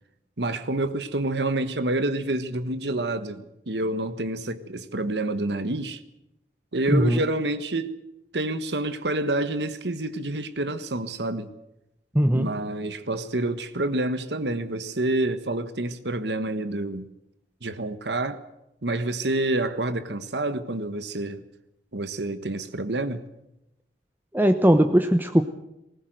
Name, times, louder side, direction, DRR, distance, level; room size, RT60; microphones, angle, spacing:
voice 1, 0.4-6.0 6.7-8.0 8.3-11.5 12.3-17.1 17.6-18.4 18.8-21.4 21.9-23.2, right 2 dB, 70° right, 1.4 m, -28 dB
voice 2, 6.9-7.2 12.1-12.5 24.3-25.4, right 1 dB, 10° right, 0.9 m, -19 dB
20.0 x 19.0 x 7.8 m
head